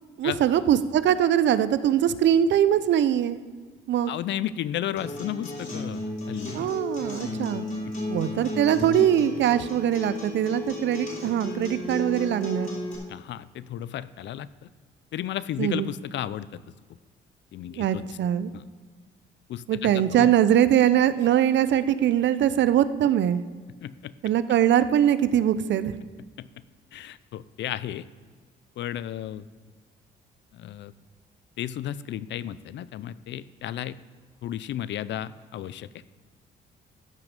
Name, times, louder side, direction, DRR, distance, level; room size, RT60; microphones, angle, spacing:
voice 1, 0.2-3.4 3.9-4.1 6.5-7.6 8.1-12.8 15.6-15.9 17.7-18.5 19.7-23.4 24.2-25.9, right 10 dB, 65° right, 14 dB, 0.5 m, -22 dB
voice 2, 4.1-6.7 7.8-7.9 13.1-14.5 15.1-16.6 17.5-18.0 18.5-18.6 19.5-20.3 23.8-24.1 26.4-26.5 26.9-28.0 28.8-29.4 30.5-30.9 31.6-34.0 34.4-35.9, left 11 dB, 65° left, 17 dB, 0.5 m, -33 dB
Acoustic guitar, 5.0-13.0, left 2 dB, 40° left, 3.5 m, -34 dB
13.5 x 5.9 x 5.2 m, 1.5 s
cardioid pair, 90°, 20 cm